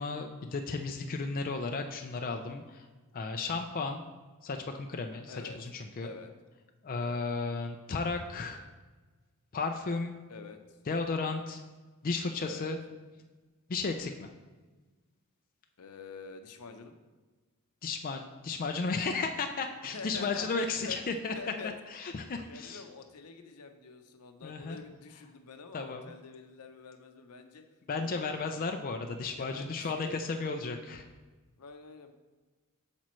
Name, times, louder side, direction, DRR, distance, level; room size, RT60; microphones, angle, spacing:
voice 1, 0.0-2.9 3.1-4.0 4.4-6.1 6.8-8.6 9.5-10.1 10.9-11.6 12.0-12.8 13.7-14.3 17.8-21.3 21.9-22.8 24.4-24.8 25.7-26.0 27.9-31.0, left 4 dB, 40° left, 4 dB, 0.4 m, -34 dB
voice 2, 5.3-5.6 6.0-6.3 7.0-7.2 10.3-10.8 12.4-12.7 15.8-16.9 19.9-21.7 22.5-27.6 28.0-28.6 29.4-30.5 31.6-32.1, left 4 dB, 85° left, 7 dB, 0.7 m, -46 dB
8.4 x 6.1 x 3.1 m, 1.3 s
head